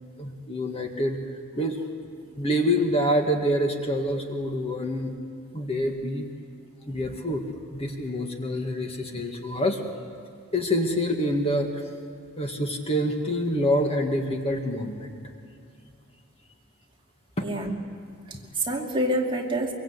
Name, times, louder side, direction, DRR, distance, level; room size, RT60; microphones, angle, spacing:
voice 1, 0.2-1.2 1.6-1.8 2.4-5.1 5.5-6.3 6.9-7.4 7.7-9.8 10.5-11.7 12.4-15.2 17.4-17.5, equal, 25° left, 3 dB, 1.9 m, -26 dB
voice 2, 17.4-17.7 18.3-19.7, right 1 dB, 25° right, -1 dB, 2.5 m, -28 dB
24.0 x 23.5 x 8.2 m, 2.5 s
head